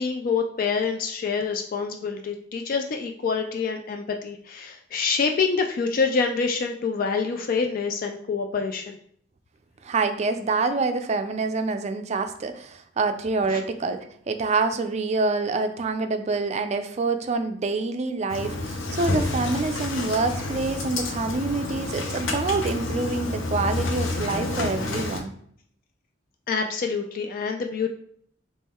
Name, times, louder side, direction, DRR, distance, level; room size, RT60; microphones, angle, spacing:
voice 1, 0.0-9.0 13.5-13.6 26.5-27.9, left 5 dB, 50° left, 4 dB, 0.3 m, -26 dB
voice 2, 9.8-25.3, right 3 dB, 35° right, 8 dB, 0.4 m, -26 dB
Engine starting, 18.3-25.2, left 2 dB, 85° left, 0.7 m, -29 dB
3.6 x 3.1 x 4.2 m, 0.63 s
head